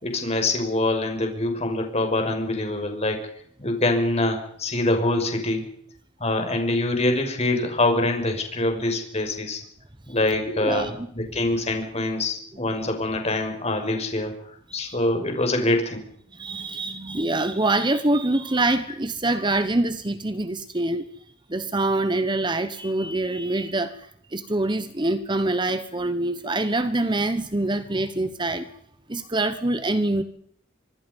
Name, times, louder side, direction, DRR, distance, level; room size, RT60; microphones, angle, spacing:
voice 1, 0.0-3.2 3.6-5.6 6.2-9.6 10.1-14.3 14.7-16.0, left 2 dB, 35° left, 4 dB, 6.1 m, -24 dB
voice 2, 10.5-11.1 14.7-15.0 16.3-21.1 21.5-28.8 29.1-30.2, right 2 dB, 25° right, 11 dB, 1.2 m, -25 dB
25.5 x 25.5 x 5.5 m, 0.65 s
head